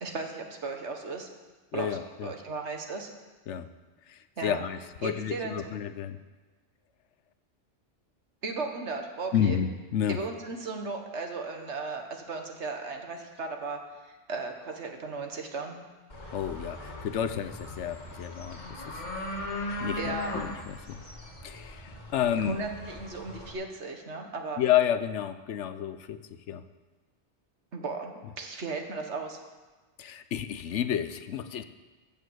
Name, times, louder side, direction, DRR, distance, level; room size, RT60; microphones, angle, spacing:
voice 1, 0.0-1.3 1.7-3.1 4.4-4.6 5.0-5.6 8.4-9.6 10.1-13.8 14.3-15.8 20.0-20.3 22.4-24.6 27.7-29.4, right 3 dB, 70° right, 4 dB, 1.7 m, -36 dB
voice 2, 1.7-2.3 3.5-3.7 4.1-6.2 9.3-10.2 16.3-19.5 19.8-21.0 21.4-22.6 24.6-26.6 30.0-31.6, left 9 dB, 75° left, 11 dB, 1.0 m, -31 dB
sound 1, 16.1-23.5, left 1 dB, 40° left, 1.9 m, -39 dB
14.0 x 7.1 x 8.0 m, 1.3 s
omnidirectional pair, 1.2 m